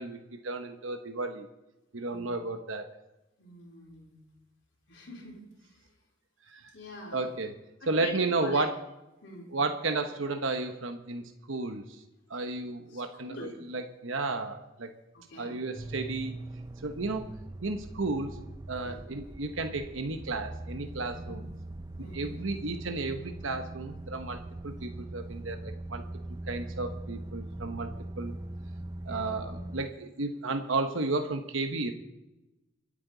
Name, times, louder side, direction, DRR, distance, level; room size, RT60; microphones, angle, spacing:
voice 1, 0.0-1.5 1.9-2.9 6.5-6.7 7.1-7.5 7.9-8.7 9.5-11.8 12.3-14.9 15.4-16.4 16.8-17.3 17.6-18.4 18.7-21.5 22.1-26.0 26.5-28.3 29.1-31.9, right 3 dB, 75° right, 6 dB, 1.1 m, -33 dB
voice 2, 3.4-4.2 4.9-5.9 6.7-7.3 7.8-8.6 9.2-9.5 12.9-13.5 15.1-15.6 18.8-19.0 21.1-21.5 22.0-22.4 29.1-29.5, left 1 dB, 60° left, -4 dB, 4.1 m, -45 dB
sound 1, 15.7-29.8, right 2 dB, 20° right, 0.4 m, -41 dB
24.5 x 8.8 x 4.0 m, 0.98 s
head